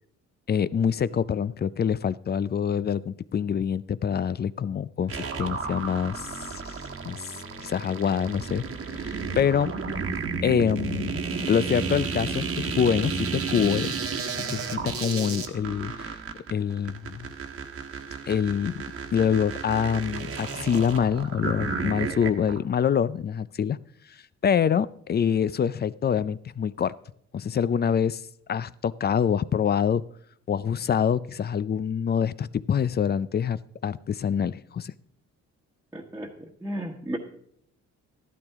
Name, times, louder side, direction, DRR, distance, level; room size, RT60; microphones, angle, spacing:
voice 1, 0.5-6.7 7.0-7.3 7.6-8.6 9.0-9.7 10.4-11.2 11.5-13.9 14.5-16.1 16.5-17.3 18.3-18.8 19.1-23.8 24.4-26.9 27.3-28.2 28.5-30.0 30.5-34.9, left 7 dB, 35° left, 18 dB, 0.4 m, -25 dB
sound 1, 5.1-22.6, right 5 dB, 50° right, 1.4 m, -32 dB
voice 2, 35.9-37.2, right 1 dB, 5° right, -3 dB, 1.4 m, -34 dB
13.5 x 12.0 x 3.6 m, 0.67 s
cardioid pair, 90°, 30 cm